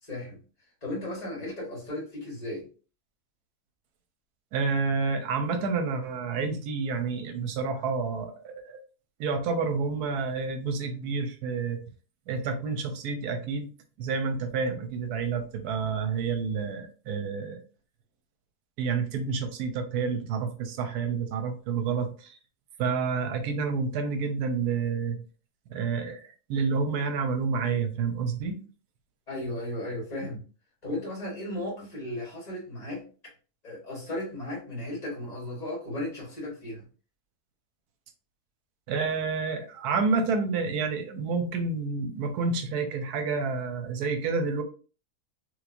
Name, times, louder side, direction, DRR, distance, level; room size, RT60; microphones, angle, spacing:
voice 1, 0.1-0.4 0.8-2.6 29.3-30.4 30.8-33.0 33.6-36.8, left 1 dB, 25° left, -4 dB, 1.9 m, -35 dB
voice 2, 4.5-8.8 9.2-11.8 12.3-13.7 14.0-17.6 18.8-22.4 22.8-25.2 25.7-28.6 38.9-44.6, right 5 dB, 80° right, 8 dB, 1.2 m, -29 dB
3.3 x 3.1 x 2.5 m, 0.36 s
omnidirectional pair, 1.6 m